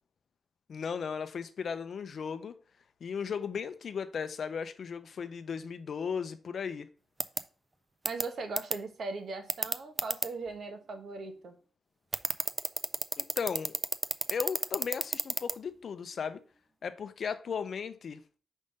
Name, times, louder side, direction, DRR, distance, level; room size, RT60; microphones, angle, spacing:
voice 1, 0.7-2.5 3.0-6.9 13.2-13.7 14.3-16.4 16.8-18.2, left 6 dB, 55° left, 0.5 m, -36 dB
sound 1, 7.2-7.4 8.1-8.2 8.6-8.7 9.5-10.3 12.1-15.5, right 3 dB, 20° right, 0.3 m, -29 dB
voice 2, 8.0-11.5, right 3 dB, 60° right, 1.1 m, -39 dB
5.3 x 3.6 x 5.2 m
wide cardioid pair, 140°, 0 cm